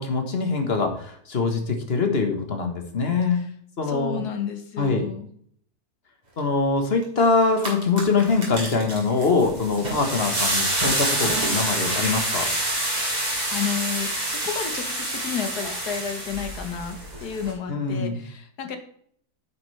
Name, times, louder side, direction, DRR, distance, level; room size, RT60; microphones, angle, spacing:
voice 1, 0.0-3.5 3.8-4.2 4.8-5.1 6.4-12.5 17.7-18.2, left 4 dB, 40° left, 5 dB, 1.4 m, -23 dB
voice 2, 3.8-5.3 13.5-18.8, left 7 dB, 65° left, 7 dB, 1.7 m, -31 dB
sound 1, 7.0-7.1 7.4-17.5, right 1 dB, 25° right, 2.9 m, -27 dB
9.4 x 7.2 x 3.3 m, 0.62 s
omnidirectional pair, 1.9 m